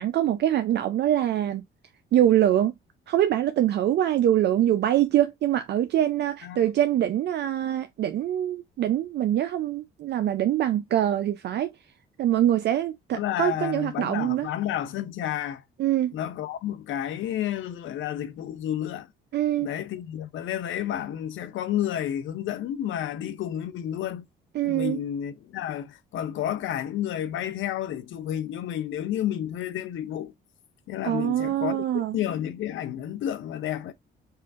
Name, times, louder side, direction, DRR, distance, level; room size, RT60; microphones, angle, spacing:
voice 1, 0.0-1.6 2.1-2.7 3.1-11.7 12.2-14.5 15.8-16.1 19.3-19.7 24.5-25.0 31.0-32.2, right 11 dB, 60° right, 0.4 m, -24 dB
voice 2, 13.1-15.6 16.1-19.1 19.6-24.2 24.6-30.3 30.9-33.9, left 11 dB, 80° left, 0.6 m, -31 dB
5.5 x 2.5 x 2.4 m
cardioid pair, 90°, 20 cm